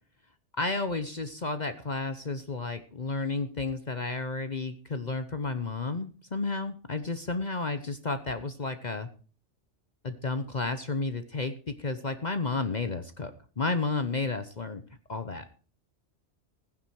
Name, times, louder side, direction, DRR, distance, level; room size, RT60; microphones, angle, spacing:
voice 1, 0.6-9.1 10.0-13.3 13.6-14.8 15.1-15.5, left 3 dB, 40° left, 9 dB, 1.0 m, -32 dB
15.0 x 10.5 x 4.7 m, 0.38 s
omnidirectional pair, 1.2 m